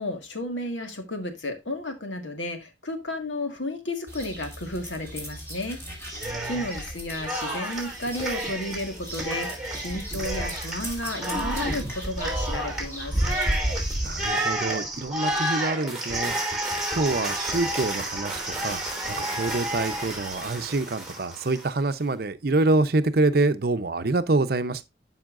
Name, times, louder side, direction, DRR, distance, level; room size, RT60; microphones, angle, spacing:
voice 1, 0.0-5.8 6.1-13.2, left 1 dB, 85° left, 1.8 m, -33 dB
sound 1, 4.1-14.3, right 1 dB, 15° left, 2.8 m, -33 dB
Cheering, 6.1-6.9 7.2-21.7, right 1 dB, ahead, 2.8 m, -31 dB
voice 2, 6.2-6.6 14.0-16.3 16.9-24.8, right 2 dB, 55° right, 0.7 m, -26 dB
12.0 x 5.6 x 2.5 m
head